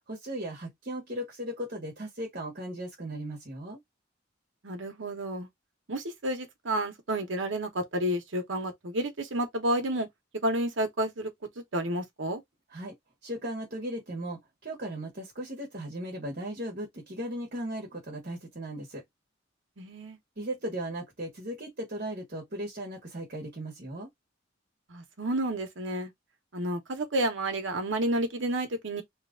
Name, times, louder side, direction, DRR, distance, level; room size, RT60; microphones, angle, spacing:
voice 1, 0.1-3.8 12.7-12.9 13.2-19.0 20.4-24.1, right 1 dB, 50° right, 1.2 m, -37 dB
voice 2, 4.6-5.5 5.9-10.1 10.4-11.3 11.6-12.4 19.8-20.2 24.9-26.1 26.5-29.0, right 1 dB, 70° right, 1.0 m, -30 dB
3.0 x 2.4 x 3.6 m
head